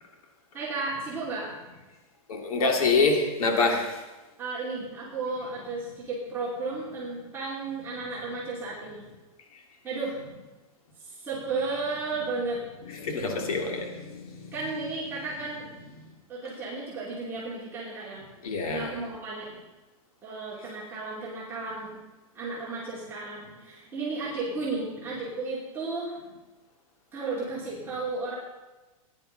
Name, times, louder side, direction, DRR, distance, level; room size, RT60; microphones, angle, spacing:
voice 1, 0.5-1.5 4.4-9.0 9.8-10.2 11.0-12.6 14.5-15.7 16.3-18.2 18.7-19.5 20.2-22.0 22.3-26.2 27.1-28.4, right 3 dB, 10° right, -8 dB, 2.8 m, -33 dB
voice 2, 2.3-3.9 12.9-14.1 18.4-18.9, left 3 dB, 80° left, 3 dB, 2.5 m, -25 dB
17.0 x 10.5 x 4.0 m, 1.1 s
supercardioid pair, 170°, 18 cm